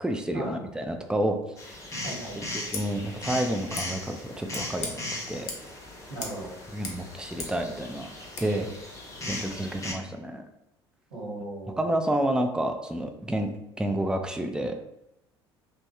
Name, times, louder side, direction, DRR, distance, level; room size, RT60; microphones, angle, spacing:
voice 1, 0.0-1.4 2.4-5.0 5.3-5.5 6.7-8.1 8.4-8.7 9.3-10.5 11.8-13.5 13.8-14.8, right 1 dB, 5° right, 5 dB, 0.4 m, -29 dB
sound 1, 1.6-9.9, left 1 dB, 20° left, 0.8 m, -38 dB
voice 2, 2.0-2.4 6.1-6.5 11.1-11.9, right 1 dB, 80° right, -6 dB, 1.2 m, -37 dB
Scissors, 2.6-2.9 3.7-3.9 4.5-4.9 5.5-5.7 6.2-6.4 6.7-7.6 8.3-8.5, left 3 dB, 60° left, 0.7 m, -38 dB
3.0 x 2.1 x 2.9 m, 0.83 s
figure-of-eight pair, 60°, 14 cm